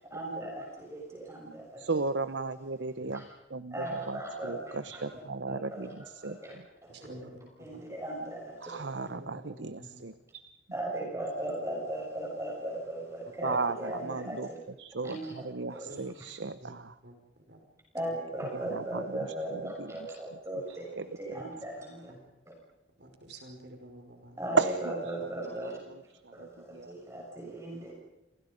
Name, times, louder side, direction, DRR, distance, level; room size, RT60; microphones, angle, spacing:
voice 1, 0.1-2.1 3.1-3.2 3.7-5.1 5.5-7.1 7.6-8.9 10.7-14.6 15.0-16.0 17.9-22.1 24.4-25.7 26.3-27.9, right 1 dB, 15° right, -1 dB, 6.5 m, -38 dB
voice 2, 1.8-3.2 3.5-6.4 8.6-10.4 13.4-14.5 14.8-16.9 18.5-19.9 21.0-21.3 24.6-25.0 25.5-26.9, right 4 dB, 85° right, 13 dB, 1.0 m, -35 dB
voice 3, 6.9-7.8 9.0-10.1 13.5-13.6 15.8-16.0 16.6-17.6 18.1-18.2 21.3-21.4 22.1-22.2 23.0-24.4, right 1 dB, 70° right, 4 dB, 5.3 m, -49 dB
29.5 x 26.5 x 5.3 m, 0.94 s
head